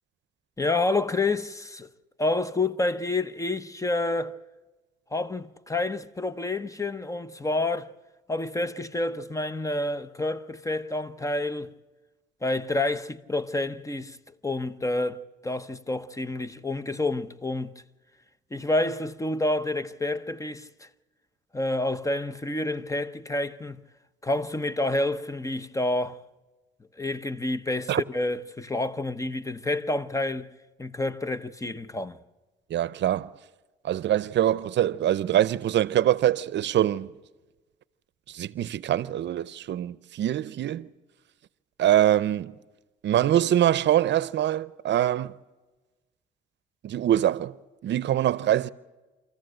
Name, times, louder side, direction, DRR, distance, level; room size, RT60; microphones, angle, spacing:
voice 1, 0.6-1.9 2.2-4.4 5.1-7.9 8.3-11.7 12.4-14.2 14.4-17.8 18.5-20.9 21.5-23.8 24.2-26.2 26.9-30.5 30.8-32.2, left 2 dB, 15° left, 0.8 m, -28 dB
voice 2, 32.7-33.3 33.8-37.1 38.3-40.9 41.8-42.6 43.0-45.3 46.8-47.6 47.8-48.7, right 12 dB, 65° right, 0.6 m, -24 dB
26.5 x 14.5 x 7.8 m
cardioid pair, 90°, 20 cm